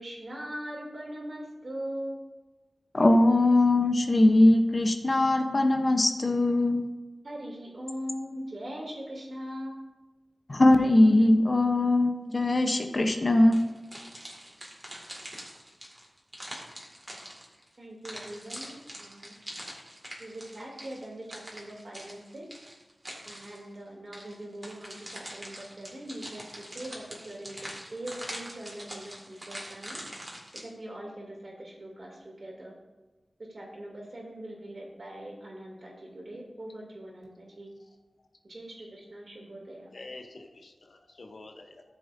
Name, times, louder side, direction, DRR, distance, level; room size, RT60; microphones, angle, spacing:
voice 1, 0.0-2.2 7.2-9.9 17.8-19.4 20.2-22.4 23.2-30.0 30.5-32.7 33.5-37.7 38.4-39.9, right 1 dB, 55° right, -2 dB, 2.7 m, -41 dB
voice 2, 2.9-6.8 10.5-13.6, left 1 dB, 45° left, 5 dB, 0.9 m, -21 dB
sound 1, 13.5-17.7 18.0-23.7 24.1-30.6, equal, 20° right, 2.2 m, -43 dB
voice 3, 39.9-41.8, left 2 dB, 75° left, 4 dB, 1.0 m, -47 dB
14.0 x 7.2 x 2.7 m, 1.2 s
wide cardioid pair, 80°, 0 cm